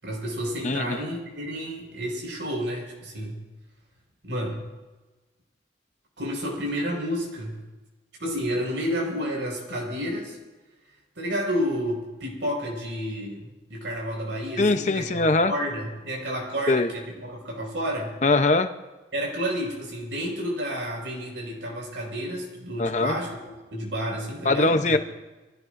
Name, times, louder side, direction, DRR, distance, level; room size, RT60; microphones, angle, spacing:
voice 1, 0.0-3.4 4.2-4.6 6.2-7.6 8.2-10.4 11.2-18.2 19.1-23.4 23.7-25.0, equal, 80° right, -1 dB, 5.5 m, -30 dB
voice 2, 0.6-1.0 14.6-15.5 16.7-16.9 18.2-18.7 22.8-23.2 24.4-25.0, left 2 dB, 40° left, 8 dB, 0.8 m, -21 dB
25.0 x 17.0 x 2.6 m, 1.2 s
head